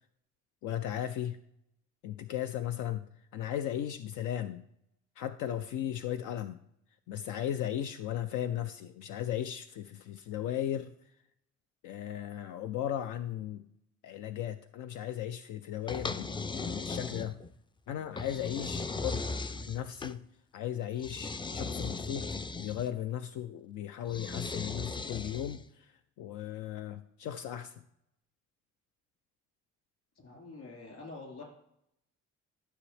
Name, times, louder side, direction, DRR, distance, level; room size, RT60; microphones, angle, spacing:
voice 1, 0.6-1.4 2.0-3.1 3.3-4.7 5.2-6.6 7.1-10.9 11.8-13.7 14.0-17.4 17.9-19.3 19.7-20.2 20.5-22.3 22.6-27.8, left 11 dB, 85° left, 9 dB, 0.5 m, -36 dB
sound 1, 15.9-17.6 18.2-20.2 21.0-22.9 24.1-25.7, left 3 dB, 15° left, 0.3 m, -37 dB
voice 2, 30.2-31.4, left 3 dB, 60° left, -1 dB, 4.1 m, -46 dB
12.5 x 6.2 x 3.3 m, 0.77 s
cardioid pair, 90°, 30 cm